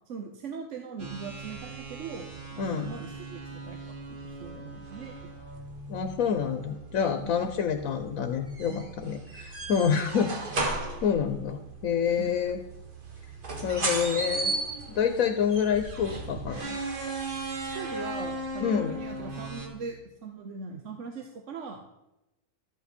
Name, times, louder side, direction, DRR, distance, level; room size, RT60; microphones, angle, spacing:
voice 1, 0.1-3.8 4.1-5.1 7.2-7.4 8.7-8.9 9.8-10.0 12.2-12.4 17.7-21.8, right 4 dB, 65° right, 4 dB, 1.1 m, -40 dB
sound 1, 1.0-19.7, right 2 dB, 40° right, 1.4 m, -36 dB
voice 2, 2.6-2.9 5.9-10.4 11.0-12.6 13.6-14.5 14.9-16.8 18.6-19.0, left 7 dB, 90° left, 8 dB, 1.2 m, -27 dB
12.0 x 8.3 x 4.3 m, 0.92 s
omnidirectional pair, 1.4 m